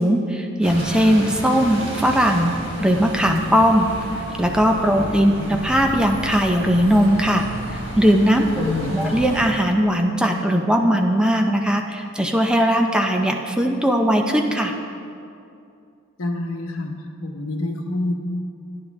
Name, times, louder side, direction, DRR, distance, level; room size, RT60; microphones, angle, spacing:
voice 1, 0.0-2.5 2.8-3.9 4.4-8.6 8.9-14.7, equal, 5° right, 3 dB, 0.5 m, -19 dB
Bus, 0.6-9.5, right 1 dB, 65° right, 2.8 m, -32 dB
voice 2, 4.8-5.6 8.6-9.2 16.2-16.9 17.2-18.1, left 2 dB, 75° left, 3 dB, 1.0 m, -28 dB
11.5 x 10.0 x 3.5 m, 2.5 s
head